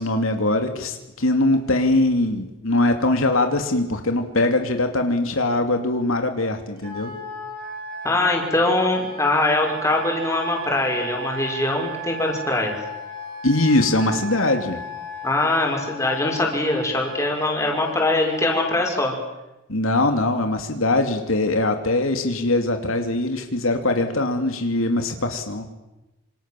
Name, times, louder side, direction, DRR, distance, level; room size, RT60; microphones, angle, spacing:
voice 1, 0.0-7.1 13.4-14.8 19.7-25.7, left 2 dB, 75° left, 5 dB, 2.7 m, -22 dB
Wind instrument woodwind instrument, 6.8-18.8, right 1 dB, 45° right, 6.6 m, -35 dB
voice 2, 8.0-12.7 15.2-19.1, left 2 dB, 15° left, 1 dB, 6.0 m, -22 dB
27.0 x 27.0 x 7.6 m, 0.99 s
head